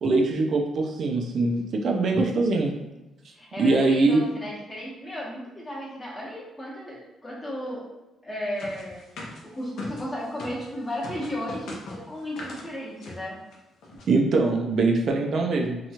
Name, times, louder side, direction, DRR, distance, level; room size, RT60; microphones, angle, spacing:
voice 1, 0.0-2.7 3.6-4.2 14.1-15.9, right 3 dB, 60° right, 1 dB, 0.4 m, -22 dB
voice 2, 3.3-7.8 8.2-9.0 9.4-13.4, equal, 20° left, -4 dB, 0.9 m, -34 dB
sound 1, 8.6-10.7 11.0-12.7 13.0-13.2 13.5-13.6 13.8-14.1, left 2 dB, 75° left, 0.6 m, -39 dB
2.9 x 2.3 x 2.8 m, 1.0 s
cardioid pair, 90°, 0 cm